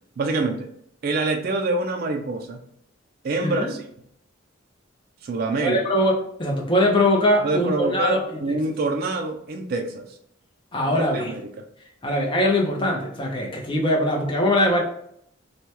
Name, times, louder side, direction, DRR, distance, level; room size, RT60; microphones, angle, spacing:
voice 1, 0.2-0.7 1.0-2.6 3.2-3.8 5.2-5.8 7.4-10.2 10.8-11.7, right 2 dB, 45° right, 4 dB, 0.3 m, -26 dB
voice 2, 5.6-8.6 10.7-11.3 12.0-14.8, left 1 dB, 25° left, -1 dB, 0.6 m, -22 dB
3.2 x 2.2 x 2.8 m, 0.70 s
head